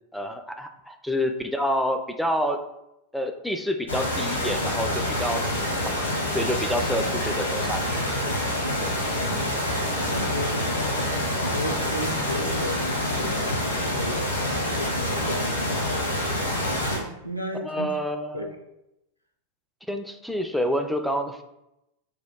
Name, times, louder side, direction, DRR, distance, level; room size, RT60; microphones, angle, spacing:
voice 1, 0.1-2.6 3.1-6.0 6.3-8.0 10.9-11.0 17.6-18.5 19.9-21.4, equal, ahead, 5 dB, 0.3 m, -28 dB
sound 1, 3.9-17.0, left 1 dB, 80° left, 0.9 m, -27 dB
voice 2, 8.7-9.7 10.1-11.0 11.4-14.4 14.8-16.2 16.8-17.9 18.3-18.6, equal, 90° right, 3 dB, 0.4 m, -35 dB
3.3 x 2.2 x 4.4 m, 0.88 s
figure-of-eight pair, 90°, 0 cm